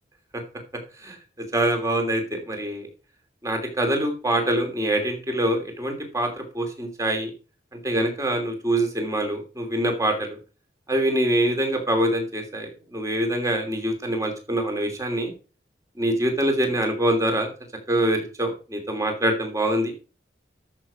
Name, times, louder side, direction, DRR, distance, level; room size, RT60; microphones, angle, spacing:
voice 1, 1.5-2.9 3.4-6.3 6.5-7.3 7.8-10.4 10.9-15.3 16.0-17.5 17.9-19.9, right 1 dB, 20° right, 4 dB, 2.9 m, -24 dB
13.5 x 6.1 x 5.0 m, 0.34 s
head